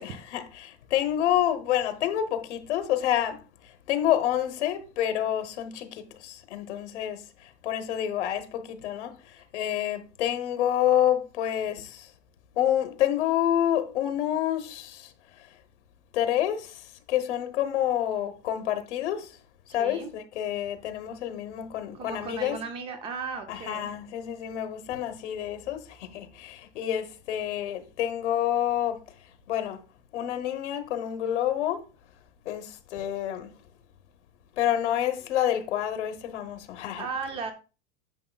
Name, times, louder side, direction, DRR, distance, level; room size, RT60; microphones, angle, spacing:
voice 1, 0.0-3.4 3.9-7.2 7.6-9.1 9.5-12.1 12.6-15.1 16.1-16.8 17.1-19.3 19.7-22.6 23.5-29.0 29.5-29.8 30.1-31.8 32.5-33.5 34.6-37.1, left 11 dB, 90° left, 1.1 m, -28 dB
voice 2, 19.8-20.1 21.9-23.9 37.0-37.5, right 5 dB, 15° right, 0.4 m, -35 dB
9.5 x 6.6 x 2.3 m
supercardioid pair, 165°, 34 cm